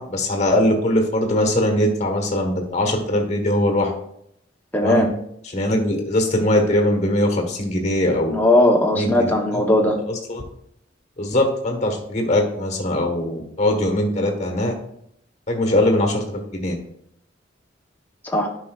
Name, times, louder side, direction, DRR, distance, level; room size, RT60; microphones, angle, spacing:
voice 1, 0.0-3.9 4.8-5.1 5.4-8.3 8.9-9.6 10.1-10.4 11.2-14.7 15.5-16.7, left 1 dB, 35° left, 3 dB, 1.3 m, -21 dB
voice 2, 4.7-5.1 8.3-10.0 18.2-18.5, left 1 dB, 10° left, 0 dB, 0.9 m, -18 dB
11.5 x 5.4 x 2.4 m, 0.72 s
head